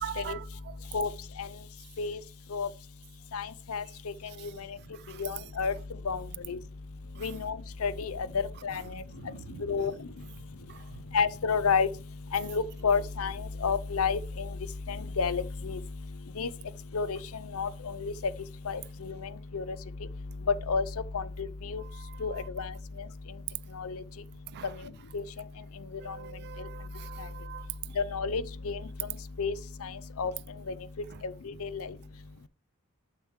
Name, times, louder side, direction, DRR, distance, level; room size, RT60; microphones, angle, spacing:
voice 1, 0.0-0.4 5.1-5.2 8.9-9.6 10.7-10.8 21.8-22.5 24.5-24.7 26.0-27.7, right 10 dB, 50° right, 0.3 m, -43 dB
voice 2, 3.3-3.8 5.2-5.7 6.1-6.2 6.5-6.6 7.2-7.6 7.8-8.8 9.6-9.9 11.1-11.9 12.3-14.5 14.9-15.8 16.4-16.5 16.9-17.2 17.5-18.1 18.7-19.1 19.5-19.6 20.7-20.8 21.1-21.8 22.2-22.7 23.8-24.0 25.1-25.2 26.1-26.2 28.0-28.8 29.4-29.5 29.8-29.9 30.2-30.3 31.6-31.9, left 5 dB, 70° left, 0.6 m, -30 dB
7.2 x 6.7 x 3.2 m
head